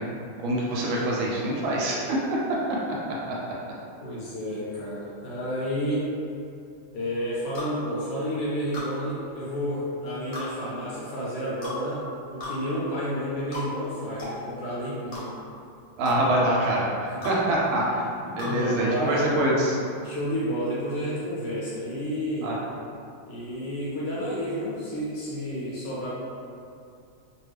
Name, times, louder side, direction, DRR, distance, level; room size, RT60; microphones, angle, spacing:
voice 1, 0.4-2.4 3.3-3.4 16.0-18.1 18.4-19.8 22.4-22.6, right 1 dB, 80° right, -4 dB, 1.4 m, -25 dB
voice 2, 4.0-6.1 6.9-12.0 12.3-15.3 18.4-19.3 20.0-22.5 23.3-26.1, equal, 75° left, -7 dB, 1.1 m, -30 dB
sound 1, 7.5-7.7 8.7-8.9 10.3-10.5 11.6-11.8 12.4-12.6 13.5-13.7 14.2-14.4 15.1-15.2 16.0-16.2 17.2-17.4 18.4-18.5, left 3 dB, 55° left, 0.9 m, -35 dB
3.3 x 2.3 x 3.2 m, 2.5 s
omnidirectional pair, 2.3 m